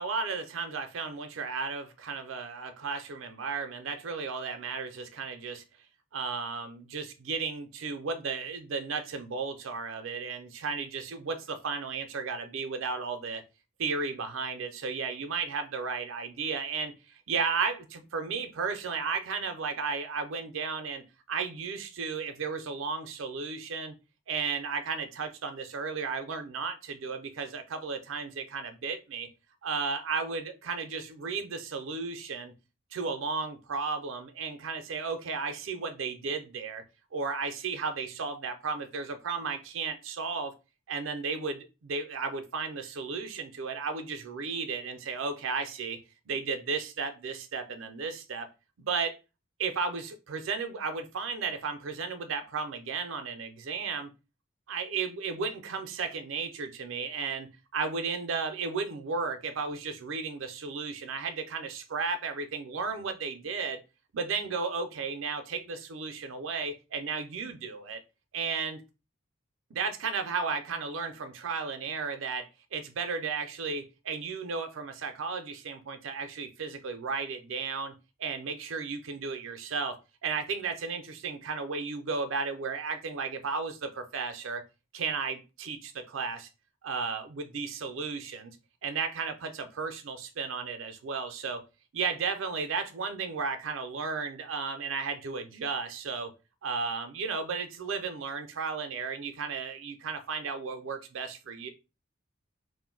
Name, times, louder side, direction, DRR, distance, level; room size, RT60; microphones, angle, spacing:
voice 1, 0.0-5.6 6.1-13.4 13.8-24.0 24.3-29.3 29.6-32.5 32.9-36.8 37.1-40.5 40.9-46.0 46.3-48.5 48.8-49.2 49.6-54.1 54.7-63.8 64.1-68.0 68.3-68.8 69.7-77.9 78.2-84.6 84.9-86.5 86.8-88.6 88.8-91.6 91.9-96.3 96.6-101.7, right 5 dB, 85° right, 0.5 m, -34 dB
2.5 x 2.1 x 3.8 m
head